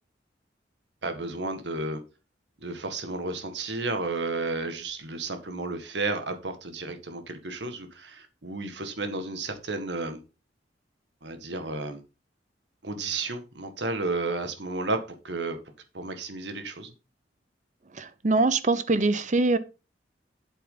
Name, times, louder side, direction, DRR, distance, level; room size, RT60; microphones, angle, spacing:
voice 1, 1.0-2.0 2.6-10.2 11.2-12.0 12.8-15.6 15.9-16.9, right 3 dB, 75° right, 1.8 m, -32 dB
voice 2, 18.0-19.6, right 3 dB, 45° right, 0.9 m, -23 dB
8.2 x 8.1 x 3.9 m
head